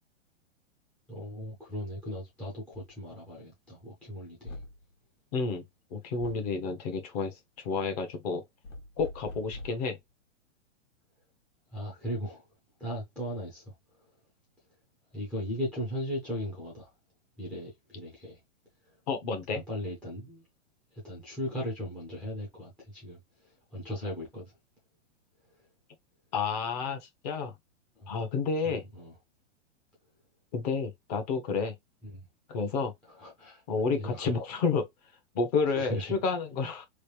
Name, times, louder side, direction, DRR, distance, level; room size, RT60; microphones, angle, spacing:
voice 1, 1.1-4.6 11.7-12.5 12.8-13.7 15.1-16.9 17.4-18.4 19.5-20.4 20.9-24.5 28.0-28.1 28.6-29.2 32.0-32.3 33.1-34.3 35.6-36.2, equal, 5° left, 0.4 m, -37 dB
sound 1, 2.7-2.9 4.5-4.8 6.2-6.5 8.6-9.9, left 2 dB, 80° left, 1.5 m, -43 dB
voice 2, 5.3-5.6 5.9-7.3 7.6-8.4 9.0-10.0 19.1-19.6 26.3-27.5 28.1-28.8 30.5-31.7 32.5-32.9 33.7-34.8 35.3-36.8, left 4 dB, 35° left, 0.8 m, -30 dB
3.2 x 2.5 x 3.1 m
hypercardioid pair, 155°, 37 cm